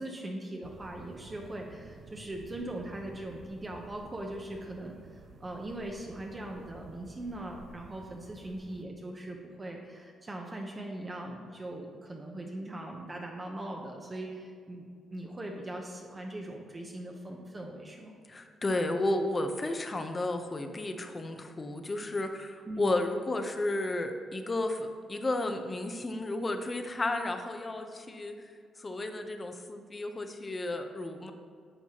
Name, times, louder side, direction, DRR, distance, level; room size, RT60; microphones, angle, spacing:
voice 1, 0.0-18.1 22.7-23.0, right 1 dB, 20° right, 1 dB, 0.7 m, -40 dB
sound 1, 0.6-8.8, right 4 dB, 45° right, 0.4 m, -52 dB
voice 2, 18.3-28.5 28.8-31.3, left 2 dB, 20° left, 6 dB, 0.6 m, -33 dB
11.0 x 7.3 x 2.9 m, 2.2 s
cardioid pair, 150°, 0 cm